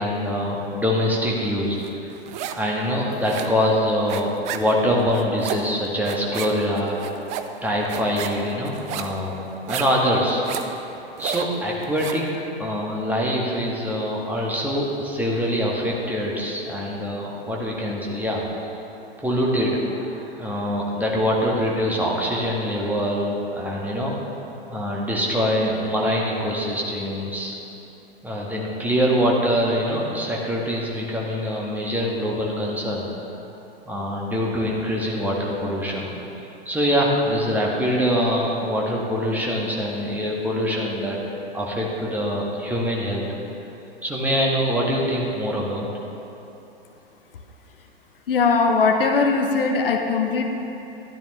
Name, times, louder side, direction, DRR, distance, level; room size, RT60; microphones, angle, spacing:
voice 1, 0.0-2.1 2.5-7.0 7.6-9.4 9.6-10.4 11.2-12.2 12.6-18.7 19.2-24.1 24.7-27.5 28.2-33.3 33.8-36.1 36.6-41.2 41.5-43.2 44.0-45.8, equal, 5° right, -4 dB, 1.7 m, -24 dB
sound 1, 1.8-2.7 3.0-12.3, right 8 dB, 25° right, 0.4 m, -33 dB
voice 2, 48.3-50.4, left 4 dB, 65° left, 4 dB, 0.9 m, -20 dB
12.5 x 12.5 x 3.3 m, 3.0 s
figure-of-eight pair, 95°, 30 cm